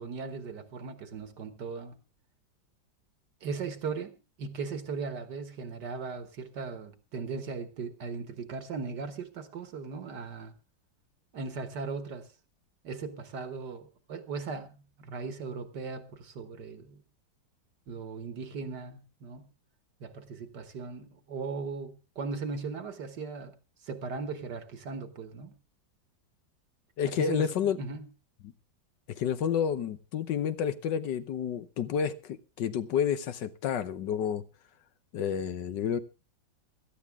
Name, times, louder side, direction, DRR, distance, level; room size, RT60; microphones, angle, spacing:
voice 1, 0.0-2.0 3.4-10.5 11.3-12.3 12.8-17.0 17.9-19.4 20.0-23.6 23.8-25.5 27.0-28.0, right 4 dB, 65° right, 1.9 m, -38 dB
voice 2, 27.0-27.8 29.2-34.4 35.1-36.0, left 8 dB, 70° left, 1.5 m, -30 dB
17.0 x 13.0 x 3.6 m
omnidirectional pair, 2.0 m